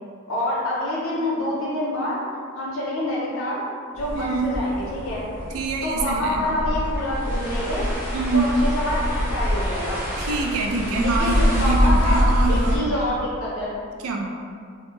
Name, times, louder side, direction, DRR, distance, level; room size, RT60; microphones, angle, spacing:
voice 1, 0.3-2.2 2.5-3.7 3.9-5.2 5.8-7.9 8.3-10.0 11.0-13.7, left 1 dB, 75° left, -6 dB, 0.7 m, -27 dB
sound 1, 3.9-12.8, equal, 10° right, 0.5 m, -24 dB
voice 2, 4.1-4.5 5.5-6.6 8.1-8.5 10.2-12.9 14.0-14.3, right 3 dB, 75° right, 1 dB, 0.3 m, -25 dB
2.1 x 2.0 x 3.0 m, 2.1 s
head